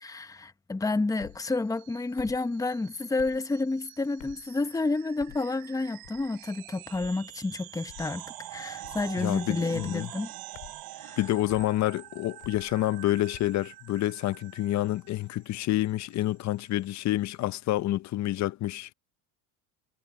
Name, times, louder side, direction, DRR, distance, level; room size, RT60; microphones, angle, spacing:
voice 1, 0.0-8.2 8.5-10.3 11.0-11.2, left 3 dB, 10° left, 1.0 m, -30 dB
sound 1, 1.2-1.4 2.2-2.4 3.2-3.4 4.2-4.5 5.2-5.4 6.0-6.3 6.9-7.2 7.9-8.1 8.8-9.1 9.7-10.0 10.5-10.8 11.5-11.7 12.4-12.7 13.3-13.6, left 28 dB, 80° left, 3.0 m, -48 dB
sound 2, 1.4-17.6, right 16 dB, 60° right, 4.9 m, -47 dB
voice 2, 9.2-10.1 11.2-18.9, left 15 dB, 45° left, 0.7 m, -28 dB
supercardioid pair, 110°, 41 cm